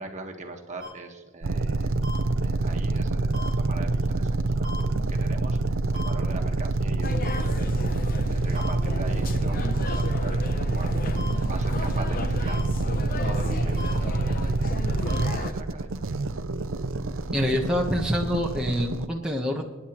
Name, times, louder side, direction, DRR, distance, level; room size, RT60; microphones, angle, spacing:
voice 1, 0.0-2.0 2.4-7.8 8.3-12.7 13.2-16.0, right 2 dB, 35° right, 3 dB, 1.4 m, -41 dB
sound 1, 0.8-0.9 2.0-2.2 3.3-3.5 4.6-4.8 5.9-6.1 7.2-7.4 8.5-8.7 9.9-10.0 11.2-11.3 12.5-12.6 13.8-13.9 15.1-15.2, left 3 dB, 60° left, 3.1 m, -37 dB
sound 2, 1.4-19.1, right 2 dB, 65° right, 0.6 m, -26 dB
sound 3, 7.0-15.5, left 3 dB, 45° left, 0.7 m, -34 dB
voice 2, 17.3-19.6, equal, 5° right, -2 dB, 1.1 m, -26 dB
27.5 x 10.0 x 3.0 m, 1.2 s
head